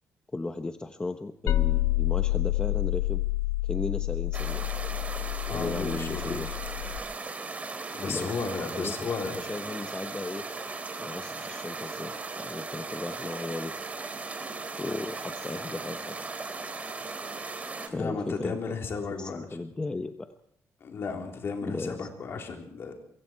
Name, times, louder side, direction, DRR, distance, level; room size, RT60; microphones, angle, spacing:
voice 1, 0.3-3.2 3.6-4.7 5.5-6.5 8.1-8.4 8.7-8.9 9.4-10.4 11.0-13.7 14.8-16.2 17.9-18.6 19.2-20.3 21.6-22.1, left 2 dB, 15° left, 7 dB, 1.0 m, -35 dB
sound 1, 1.5-7.0, left 17 dB, 85° left, 1.0 m, -28 dB
sound 2, 4.3-17.9, right 3 dB, 25° right, 2.8 m, -37 dB
voice 2, 5.4-6.6 7.9-9.4 17.9-19.5 20.8-22.9, left 5 dB, 50° left, 2 dB, 4.0 m, -34 dB
24.0 x 23.5 x 4.7 m, 0.65 s
cardioid pair, 135°, 5 cm